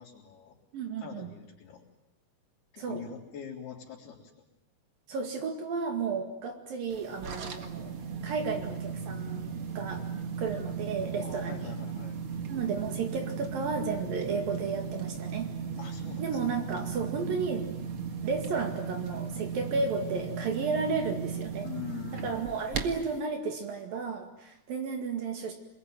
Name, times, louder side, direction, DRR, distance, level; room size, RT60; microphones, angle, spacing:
voice 1, 0.0-0.6 1.0-1.9 2.7-4.5 5.4-5.5 11.2-12.2 15.8-16.6 21.6-22.6, left 7 dB, 75° left, -7 dB, 5.5 m, -44 dB
voice 2, 0.7-1.3 2.8-3.0 5.1-7.9 8.2-10.0 10.4-11.7 12.5-15.5 16.2-17.7 18.2-21.7 22.2-25.5, right 4 dB, 65° right, 4 dB, 3.8 m, -33 dB
sound 1, 6.9-23.2, right 6 dB, 45° right, 1.9 m, -36 dB
27.0 x 21.0 x 9.4 m, 0.87 s
omnidirectional pair, 4.5 m